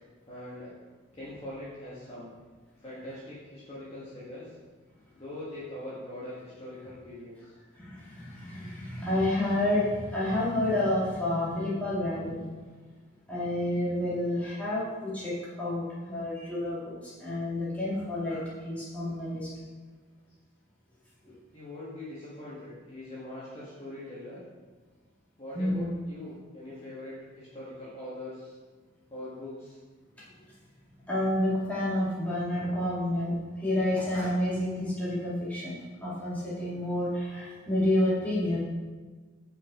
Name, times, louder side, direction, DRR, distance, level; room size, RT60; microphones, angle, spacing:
voice 1, 0.3-0.7 1.1-2.3 2.8-4.5 5.1-7.5 21.5-24.4 25.4-28.6 29.1-29.8, left 1 dB, 30° left, -9 dB, 1.6 m, -42 dB
voice 2, 7.7-12.4 13.3-19.5 21.2-21.4 25.5-25.9 30.3-30.4 31.1-38.6, left 1 dB, 5° left, -9 dB, 2.1 m, -29 dB
6.0 x 5.5 x 5.0 m, 1.4 s
head